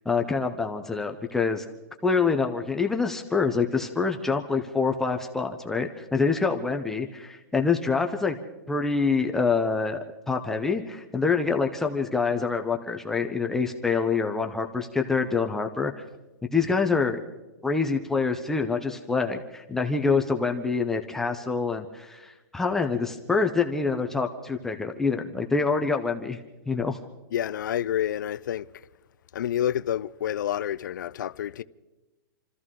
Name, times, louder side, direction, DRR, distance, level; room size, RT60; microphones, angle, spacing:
voice 1, 0.1-1.7 2.0-8.4 8.7-10.0 10.3-16.0 16.5-17.2 17.6-26.4 26.7-27.0, left 4 dB, 5° left, 0.4 m, -26 dB
voice 2, 27.3-28.6 29.3-31.6, left 10 dB, 60° left, 0.5 m, -28 dB
27.5 x 14.0 x 3.7 m
hypercardioid pair, 175°, 11 cm